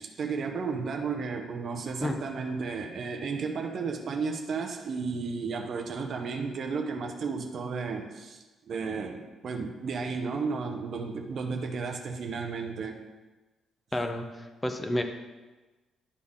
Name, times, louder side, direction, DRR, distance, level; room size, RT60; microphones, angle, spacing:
voice 1, 0.0-13.0, right 4 dB, 40° right, 3 dB, 0.6 m, -33 dB
voice 2, 13.9-15.0, left 1 dB, 10° left, 6 dB, 0.5 m, -30 dB
11.0 x 4.1 x 3.6 m, 1.2 s
cardioid pair, 175°, 0 cm